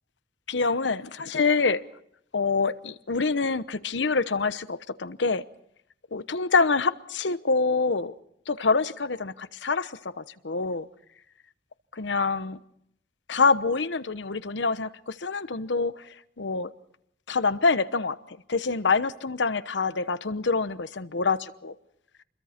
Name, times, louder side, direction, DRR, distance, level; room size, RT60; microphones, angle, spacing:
voice 1, 0.5-1.8 2.3-5.4 6.1-8.1 8.5-10.9 11.9-12.6 13.3-16.1 16.4-16.7 17.3-21.7, left 4 dB, 80° left, 13 dB, 1.0 m, -26 dB
29.0 x 22.5 x 4.4 m, 0.73 s
head